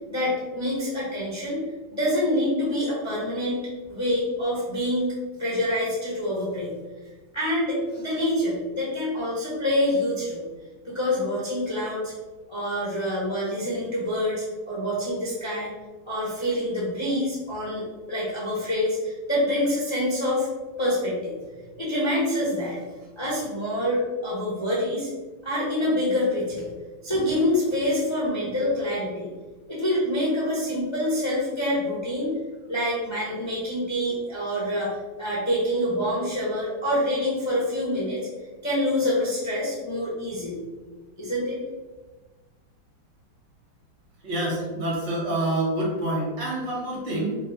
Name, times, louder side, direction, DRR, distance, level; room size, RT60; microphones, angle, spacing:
voice 1, 0.1-1.6 1.9-6.7 7.3-10.4 10.8-12.1 12.5-15.7 16.0-20.5 20.8-21.3 21.8-22.8 23.2-25.1 25.4-26.7 27.0-29.3 29.7-32.4 32.7-38.3 38.6-40.6 41.2-41.6, left 1 dB, 40° left, -7 dB, 0.4 m, -26 dB
voice 2, 44.2-47.4, right 1 dB, 60° right, -4 dB, 1.6 m, -27 dB
3.8 x 2.1 x 4.0 m, 1.2 s
omnidirectional pair, 2.1 m